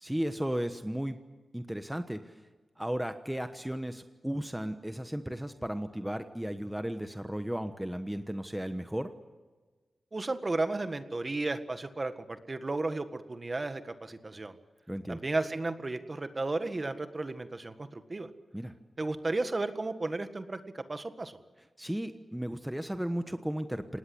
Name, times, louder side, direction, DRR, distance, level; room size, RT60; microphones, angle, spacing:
voice 1, 0.0-1.2 1.5-2.3 2.8-9.1 14.9-15.2 18.5-18.7 21.8-24.0, equal, 5° right, 8 dB, 1.2 m, -35 dB
voice 2, 10.1-14.5 15.1-18.3 19.0-21.4, right 2 dB, 35° right, 9 dB, 1.7 m, -34 dB
27.5 x 19.0 x 7.9 m, 1.3 s
wide cardioid pair, 85°, 0 cm